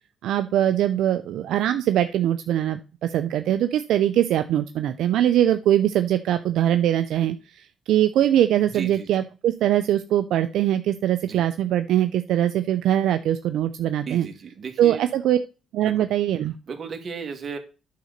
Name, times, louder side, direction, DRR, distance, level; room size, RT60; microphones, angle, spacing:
voice 1, 0.2-14.3 14.8-15.4 15.7-16.5, right 11 dB, 80° right, 9 dB, 0.5 m, -22 dB
voice 2, 8.7-9.1 11.2-11.4 14.1-15.1 15.8-16.1 16.7-17.6, right 6 dB, 45° right, 5 dB, 1.9 m, -35 dB
9.4 x 3.9 x 6.5 m, 0.33 s
cardioid pair, 90°, 0 cm